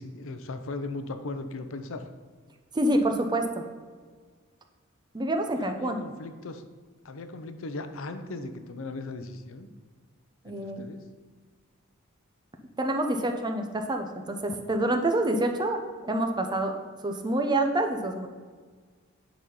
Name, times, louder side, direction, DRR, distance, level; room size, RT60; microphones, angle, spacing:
voice 1, 0.0-2.0 5.6-6.6 7.0-9.7 10.4-11.0, left 2 dB, 70° left, 9 dB, 0.7 m, -38 dB
voice 2, 2.7-3.6 5.1-6.0 10.4-10.8 12.8-16.7 17.0-18.3, right 1 dB, 20° right, 4 dB, 0.7 m, -27 dB
9.0 x 4.2 x 5.4 m, 1.5 s
head